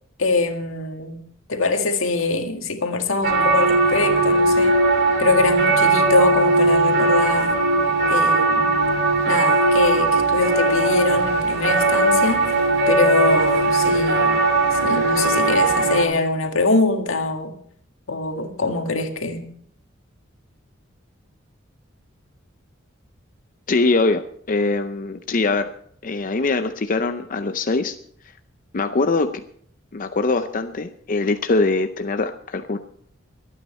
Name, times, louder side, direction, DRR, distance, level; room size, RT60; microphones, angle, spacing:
voice 1, 0.2-1.2 1.5-4.7 5.2-7.6 8.1-8.7 9.3-12.4 12.9-14.3 14.7-17.5 18.1-19.5, left 3 dB, 85° left, 5 dB, 1.9 m, -23 dB
sound 1, 3.2-16.1, right 2 dB, 55° right, 2.8 m, -18 dB
voice 2, 23.7-25.7 26.0-28.0 28.7-29.4 29.9-32.8, left 3 dB, 40° left, 8 dB, 0.6 m, -22 dB
23.5 x 9.3 x 4.3 m, 0.64 s
head